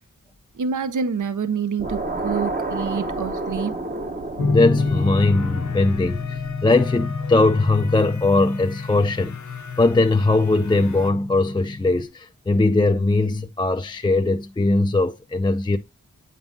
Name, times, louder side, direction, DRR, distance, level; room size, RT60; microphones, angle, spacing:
voice 1, 0.6-3.7, right 6 dB, 60° right, 0.6 m, -27 dB
sound 1, 1.8-7.1, right 2 dB, 25° right, 0.8 m, -31 dB
sound 2, 4.4-12.0, left 4 dB, 75° left, 1.1 m, -28 dB
voice 2, 4.5-9.4 9.8-15.8, left 2 dB, 15° left, 0.3 m, -20 dB
sound 3, 4.8-11.1, left 5 dB, 55° left, 0.7 m, -41 dB
8.0 x 5.4 x 2.6 m
wide cardioid pair, 80°, 35 cm